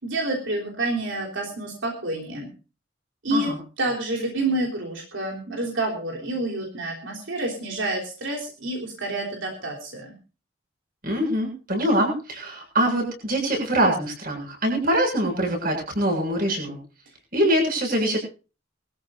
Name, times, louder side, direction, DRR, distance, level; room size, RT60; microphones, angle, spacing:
voice 1, 0.0-2.5 3.2-3.5 3.8-10.1, right 2 dB, 85° right, 0 dB, 3.4 m, -28 dB
voice 2, 11.0-16.8 17.3-18.2, right 1 dB, 50° right, 2 dB, 7.3 m, -23 dB
22.0 x 14.0 x 2.6 m, 0.34 s
head